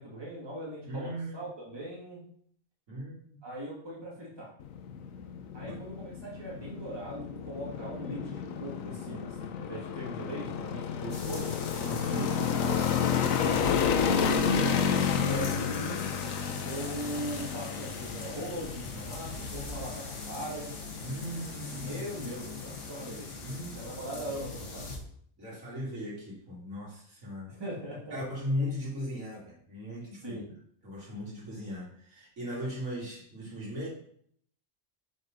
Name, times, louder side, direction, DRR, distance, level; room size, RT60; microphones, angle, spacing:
voice 1, 0.0-2.2 3.4-4.5 5.5-11.5 12.1-12.8 14.6-14.8 15.1-16.1 16.7-20.7 21.7-23.3 23.7-24.9 27.5-28.2 30.2-30.4, right 1 dB, 20° right, -5 dB, 2.0 m, -40 dB
voice 2, 0.9-1.4 2.9-3.4 10.9-11.4 11.8-12.3 21.0-22.0 23.4-23.8 24.3-24.4 25.4-27.5 28.1-30.4 30.8-33.9, equal, 80° right, -6 dB, 2.9 m, -38 dB
sound 1, 4.6-24.0, left 7 dB, 85° left, 1.1 m, -32 dB
sound 2, 11.1-25.0, left 3 dB, 70° left, 1.5 m, -41 dB
5.7 x 4.2 x 5.1 m, 0.63 s
omnidirectional pair, 1.4 m